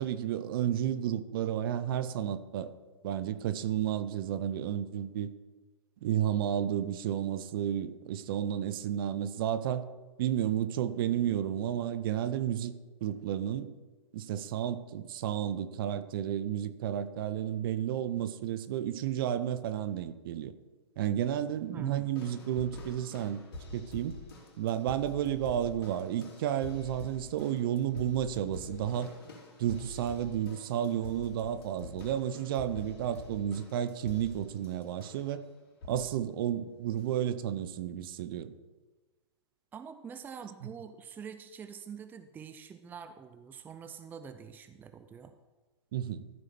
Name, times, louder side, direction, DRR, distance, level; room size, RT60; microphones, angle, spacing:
voice 1, 0.0-2.7 3.0-5.3 6.0-9.9 10.2-12.7 13.0-13.8 14.1-20.5 21.0-23.4 23.7-24.2 24.6-29.1 29.6-35.4 35.9-38.5 45.9-46.2, right 10 dB, 50° right, 13 dB, 0.7 m, -32 dB
voice 2, 21.7-22.1 39.7-45.4, right 7 dB, 10° right, 10 dB, 0.5 m, -45 dB
sound 1, 22.2-35.4 35.8-36.2 37.0-37.1, left 2 dB, 55° left, 3.4 m, -47 dB
14.0 x 4.9 x 6.0 m, 1.2 s
hypercardioid pair, 125°, 15 cm